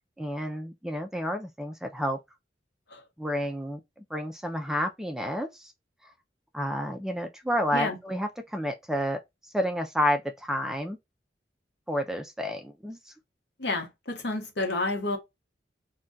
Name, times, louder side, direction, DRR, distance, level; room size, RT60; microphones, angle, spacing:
voice 1, 0.2-2.2 3.2-3.8 4.1-5.7 6.5-9.2 9.5-11.0 11.9-13.1, equal, 5° right, 0.3 m, -30 dB
voice 2, 13.6-15.2, left 2 dB, 70° left, 0.9 m, -30 dB
2.3 x 2.2 x 3.7 m
head